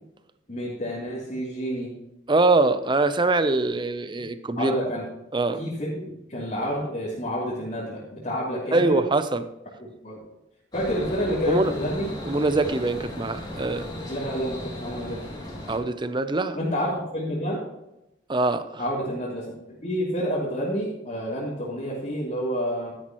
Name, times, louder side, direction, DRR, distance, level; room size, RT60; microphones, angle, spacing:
voice 1, 0.5-1.9 4.6-5.1 5.6-9.0 9.8-10.2 10.7-12.1 14.1-15.2 16.5-17.6 18.8-19.5 19.8-22.9, equal, 40° left, -7 dB, 3.0 m, -29 dB
voice 2, 2.3-4.8 5.3-5.6 8.7-9.5 11.5-11.7 12.2-13.8 15.7-16.6 18.3-18.8, right 2 dB, 25° right, 11 dB, 0.6 m, -23 dB
sound 1, 10.7-15.8, left 1 dB, 20° left, 2.7 m, -36 dB
12.5 x 10.5 x 3.1 m, 0.87 s
head